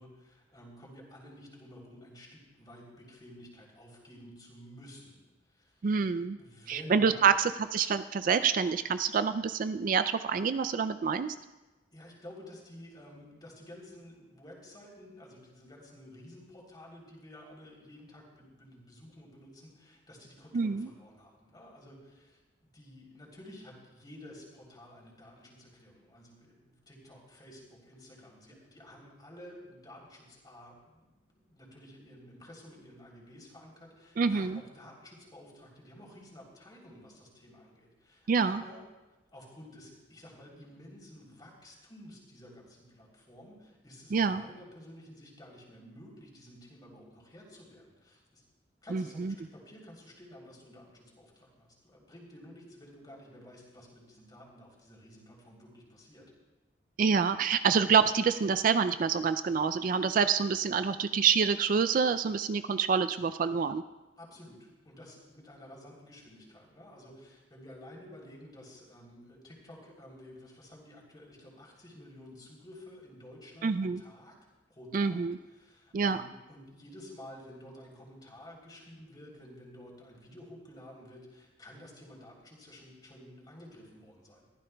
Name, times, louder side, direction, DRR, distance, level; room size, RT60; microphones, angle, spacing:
voice 1, 0.0-5.9 6.4-7.3 11.9-38.9 39.3-48.4 48.8-56.3 64.2-74.4 74.7-84.5, left 1 dB, 25° left, -2 dB, 3.3 m, -52 dB
voice 2, 5.8-6.4 6.7-11.3 20.5-20.9 34.2-34.6 38.3-38.6 44.1-44.4 48.9-49.3 57.0-63.8 73.6-74.0 74.9-75.4 75.9-76.2, right 6 dB, 45° right, 12 dB, 0.3 m, -27 dB
22.5 x 14.5 x 2.3 m, 1.1 s
head